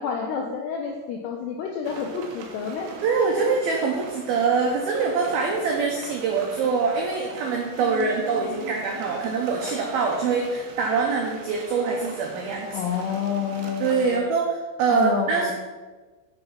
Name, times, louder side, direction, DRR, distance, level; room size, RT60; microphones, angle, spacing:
voice 1, 0.0-2.9 7.8-8.8 12.7-14.3 14.9-15.5, left 6 dB, 90° left, 1 dB, 2.3 m, -29 dB
sound 1, 1.8-14.2, right 4 dB, 75° right, 2.5 m, -42 dB
voice 2, 3.0-12.7 13.8-15.5, right 5 dB, 90° right, 0 dB, 2.1 m, -24 dB
7.0 x 6.6 x 5.8 m, 1.3 s
omnidirectional pair, 5.6 m